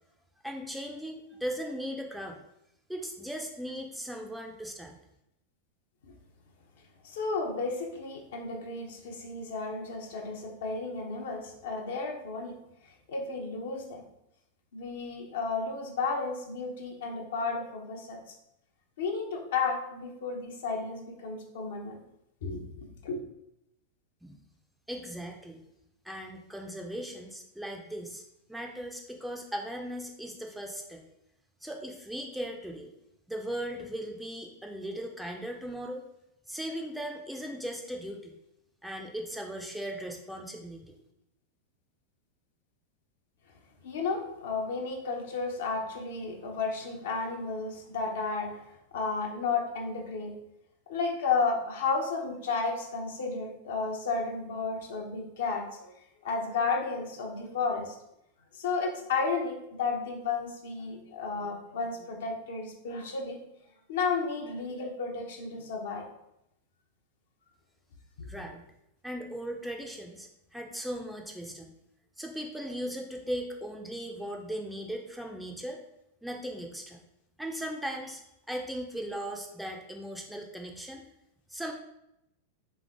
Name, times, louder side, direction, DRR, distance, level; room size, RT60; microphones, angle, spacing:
voice 1, 0.4-2.4 2.9-5.0 24.2-24.4 24.9-25.6 26.0-28.2 28.5-31.0 31.6-32.9 33.3-36.0 36.5-38.4 38.8-41.0 68.3-68.7 69.0-71.7 72.2-75.8 76.2-77.0 77.4-78.2 78.5-81.0 81.5-81.7, equal, ahead, 1 dB, 0.5 m, -38 dB
voice 2, 7.0-12.6 13.1-14.0 14.7-18.2 19.0-22.0 22.4-23.2 43.8-48.5 48.9-50.3 50.9-55.9 56.2-58.0 58.6-63.4 63.9-66.0, left 4 dB, 60° left, 1 dB, 0.7 m, -32 dB
3.5 x 3.2 x 3.5 m, 0.82 s
figure-of-eight pair, 90°, 0 cm